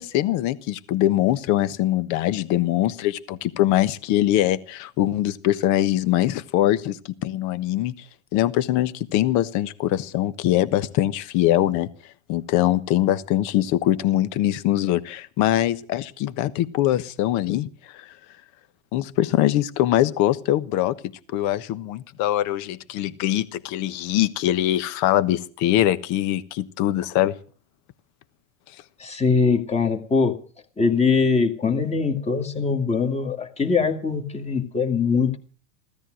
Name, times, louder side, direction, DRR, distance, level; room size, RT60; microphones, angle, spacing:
voice 1, 0.0-7.9 8.3-11.9 12.3-17.7 17.9-18.0 18.9-20.9 21.3-27.3, left 13 dB, 45° left, 14 dB, 1.3 m, -22 dB
voice 2, 29.0-30.4 30.8-35.4, left 5 dB, 15° left, 3 dB, 2.1 m, -22 dB
16.0 x 13.5 x 6.4 m, 0.41 s
hypercardioid pair, 115°, 39 cm